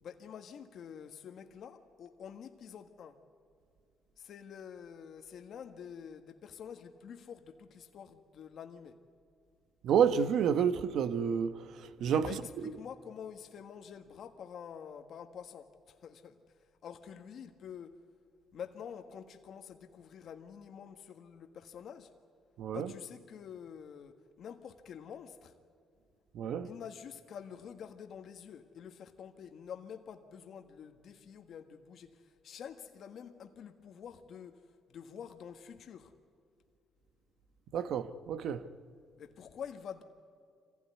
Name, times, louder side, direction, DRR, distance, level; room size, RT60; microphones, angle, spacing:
voice 1, 0.0-3.2 4.2-9.0 12.2-18.0 18.5-22.1 22.7-25.5 26.6-36.1 39.2-40.0, left 7 dB, 65° left, 1.5 m, -48 dB
voice 2, 9.8-12.3 22.6-22.9 26.3-26.7 37.7-38.7, right 7 dB, 75° right, 1.1 m, -29 dB
26.0 x 16.0 x 9.6 m
cardioid pair, 90°, 0 cm